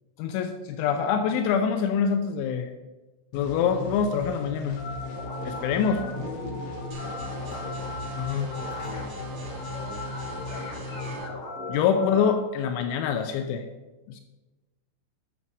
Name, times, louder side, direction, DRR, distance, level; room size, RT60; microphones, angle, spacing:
voice 1, 0.2-2.7 3.3-4.8 5.5-6.0 8.2-8.5 11.7-13.6 14.1-14.2, left 7 dB, 85° left, 6 dB, 3.1 m, -25 dB
sound 1, 3.3-11.1, left 3 dB, 65° left, 1.4 m, -38 dB
sound 2, 4.8-12.3, left 2 dB, 40° left, 5.8 m, -38 dB
voice 2, 5.8-7.4 8.3-11.1, equal, 15° left, -4 dB, 3.7 m, -44 dB
sound 3, 6.9-11.3, right 3 dB, 85° right, 1.5 m, -43 dB
11.5 x 6.8 x 6.1 m, 1.2 s
omnidirectional pair, 5.5 m